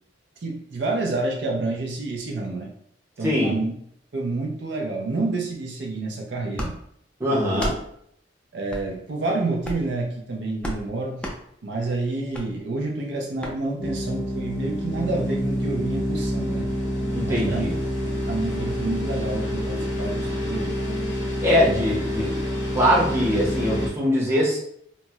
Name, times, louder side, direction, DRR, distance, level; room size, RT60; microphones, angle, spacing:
voice 1, 0.4-2.7 3.2-3.7 4.1-6.8 7.3-7.7 8.5-11.3 11.6-16.7 17.2-17.6 18.3-20.7, right 2 dB, 70° right, 0 dB, 0.5 m, -28 dB
voice 2, 3.2-3.5 7.2-7.7 17.1-17.7 21.4-22.3 22.7-24.6, equal, 15° right, -5 dB, 0.8 m, -22 dB
sound 1, 6.5-6.7 7.5-7.8 8.7-8.9 9.6-9.9 10.6-10.8 11.2-11.4 12.3-12.5 13.4-13.6, equal, 5° left, 0.4 m, -31 dB
sound 2, 13.8-23.9, equal, 90° left, 1.0 m, -27 dB
4.1 x 2.0 x 2.2 m, 0.69 s
head